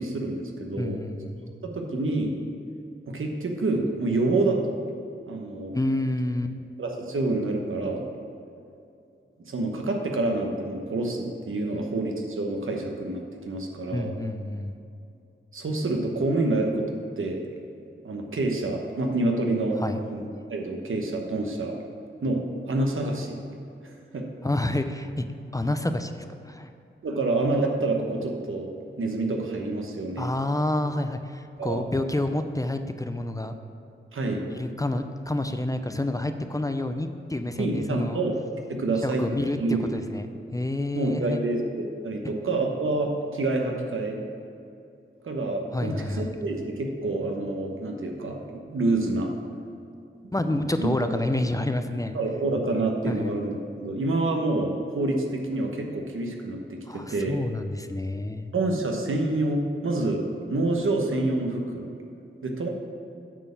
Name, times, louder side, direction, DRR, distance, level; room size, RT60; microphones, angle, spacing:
voice 1, 0.0-1.0 1.6-2.3 3.1-4.8 5.3-5.8 6.8-8.0 9.4-14.1 15.5-16.9 17.2-17.4 18.0-21.8 22.2-23.4 23.8-24.2 27.0-28.7 29.0-30.2 31.6-31.8 34.1-34.5 37.6-38.4 38.7-39.3 39.5-39.9 40.9-44.2 45.2-49.3 50.2-50.9 52.1-57.4 58.5-60.2 60.5-61.9 62.4-62.7, right 2 dB, 80° right, 2 dB, 1.1 m, -27 dB
voice 2, 0.8-1.5 5.7-6.5 11.7-11.8 13.9-14.7 19.8-20.0 24.4-25.3 25.5-26.7 30.2-33.5 34.5-38.2 39.0-41.4 45.7-46.3 50.3-52.2 53.1-53.4 56.9-58.5, left 1 dB, 15° left, 8 dB, 0.5 m, -29 dB
9.0 x 4.3 x 6.9 m, 2.6 s
wide cardioid pair, 65°, 21 cm